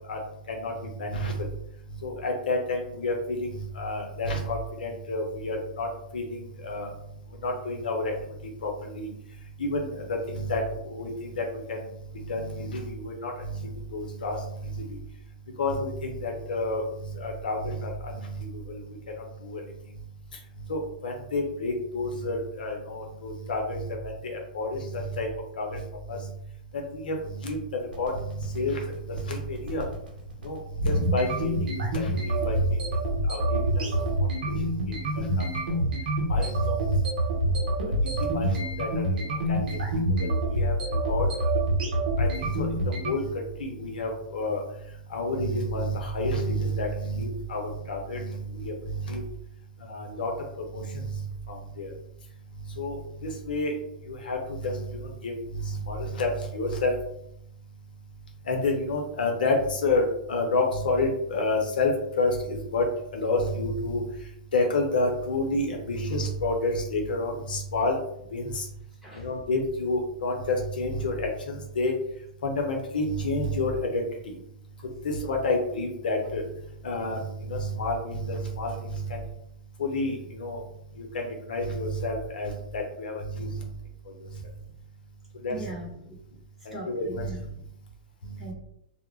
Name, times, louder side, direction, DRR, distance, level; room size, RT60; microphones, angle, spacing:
voice 1, 0.5-1.5 2.0-3.5 3.8-5.9 6.1-6.9 7.4-8.1 8.6-9.1 9.6-11.8 12.3-14.4 14.8-14.9 15.6-16.8 17.1-18.8 19.4-19.6 20.7-25.3 25.6-25.8 26.1-26.2 26.9-27.6 28.0-29.9 30.4-30.6 30.9-31.5 31.9-32.6 33.3-33.9 34.5-34.6 35.2-35.3 36.3-37.1 38.2-39.0 39.5-40.7 41.1-41.3 42.2-42.7 43.0-43.3 43.6-44.6 45.1-48.7 49.0-49.2 49.9-50.3 50.7-51.1 51.5-51.9 52.8-53.0 53.2-53.7 54.1-54.9 55.2-55.3 55.6-56.3 56.5-56.9 58.5-61.9 62.2-62.8 63.1-64.0 64.5-68.0 68.3-68.6 69.2-71.9 72.4-74.1 75.0-76.4 76.8-77.2 77.5-79.2 79.8-80.6 81.0-83.5 85.4-85.6 86.9-87.3, left 2 dB, 75° left, 2 dB, 0.6 m, -29 dB
sound 1, 27.8-43.1, right 1 dB, 70° right, 0.7 m, -26 dB
voice 2, 85.5-86.2 86.7-87.4 88.4-88.5, right 2 dB, 5° right, -5 dB, 1.1 m, -39 dB
2.2 x 2.0 x 3.1 m, 0.76 s
hypercardioid pair, 110°, 5 cm